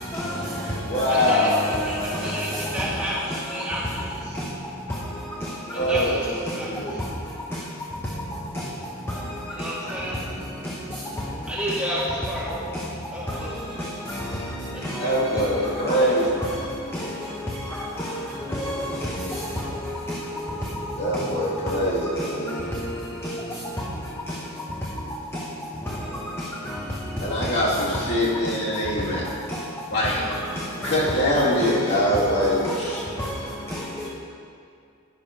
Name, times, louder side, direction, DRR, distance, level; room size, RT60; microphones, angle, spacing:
voice 1, 0.1-2.9 3.3-3.4 4.3-4.4 4.9-5.0 5.4-6.1 6.5-6.6 8.5-8.6 9.9-10.0 12.7-12.8 13.3-13.5 13.8-16.6 16.9-20.6 21.1-21.7 22.1-23.3 24.3-24.4 25.9-26.0 26.4-26.9 27.4-27.5 27.9-28.0 29.5-29.6 30.0-31.2 31.6-32.1 32.4-32.9 33.2-33.3 33.7-34.1, equal, 10° left, -4 dB, 0.8 m, -31 dB
voice 2, 0.9-1.6 5.7-6.3 6.6-6.9 15.0-16.3 21.0-22.7 27.2-29.2 29.9-30.2 30.8-33.0, equal, 55° left, -7 dB, 2.4 m, -23 dB
voice 3, 1.9-2.5 2.7-3.1 3.5-3.8 5.9-6.7 9.6-10.1 11.5-12.0 12.3-12.6 13.1-13.5 15.3-15.4, right 1 dB, 5° right, -10 dB, 2.5 m, -30 dB
10.5 x 6.0 x 5.1 m, 2.4 s
head